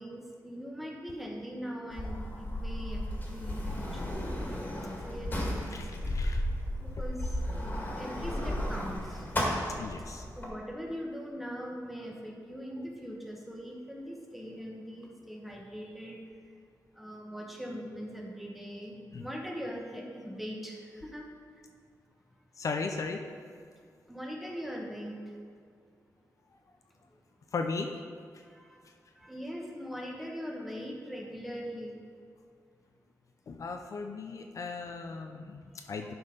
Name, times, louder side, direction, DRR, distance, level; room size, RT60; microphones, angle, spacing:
voice 1, 0.0-4.2 4.7-5.7 6.0-6.1 6.8-9.2 10.4-16.2 17.0-21.3 24.1-25.2 28.5-28.8 29.2-31.9 36.0-36.1, equal, ahead, -1 dB, 1.2 m, -41 dB
Sliding door, 1.9-10.5, left 1 dB, 30° left, 1.8 m, -34 dB
voice 2, 5.7-6.4 9.8-10.3 19.1-19.3 22.6-23.2 27.5-27.9 28.3-28.4 33.5-36.1, left 4 dB, 55° left, 4 dB, 0.5 m, -37 dB
11.0 x 4.4 x 5.1 m, 2.1 s
wide cardioid pair, 120°, 7 cm